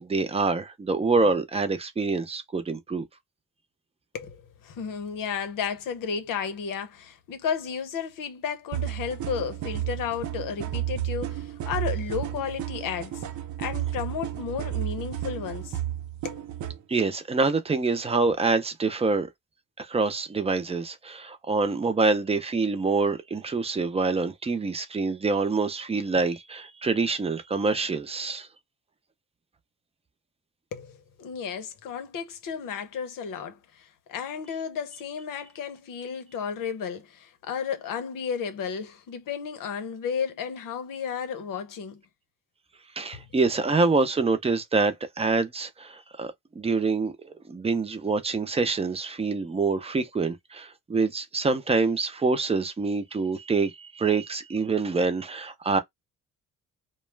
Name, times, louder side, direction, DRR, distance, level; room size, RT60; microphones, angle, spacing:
voice 1, 0.0-3.1 16.9-19.3 19.8-28.5 43.0-55.8, right 4 dB, 20° right, 0.5 m, -26 dB
voice 2, 4.1-13.2 13.6-15.8 16.2-16.4 30.7-42.0 43.1-43.3, left 7 dB, 85° left, 0.8 m, -33 dB
sound 1, 8.7-16.8, right 12 dB, 65° right, 0.6 m, -32 dB
2.3 x 2.1 x 3.2 m
cardioid pair, 125°, 32 cm